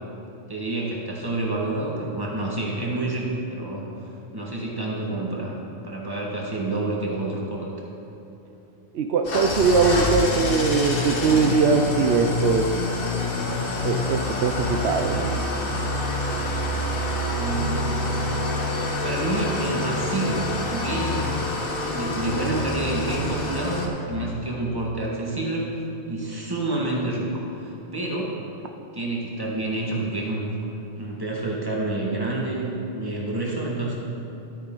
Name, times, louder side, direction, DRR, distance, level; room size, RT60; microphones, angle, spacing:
voice 1, 0.5-3.8 4.3-5.6 5.8-7.7 17.4-17.9 18.8-21.5 21.9-25.7 26.1-28.4 28.9-30.5 31.0-34.0, right 2 dB, 20° right, -3 dB, 1.8 m, -28 dB
voice 2, 8.9-12.7 13.8-15.4, right 5 dB, 75° right, 5 dB, 0.8 m, -21 dB
Engine starting / Idling, 9.2-23.9, left 2 dB, 55° left, 1.4 m, -27 dB
12.5 x 9.2 x 3.9 m, 3.0 s
omnidirectional pair, 1.1 m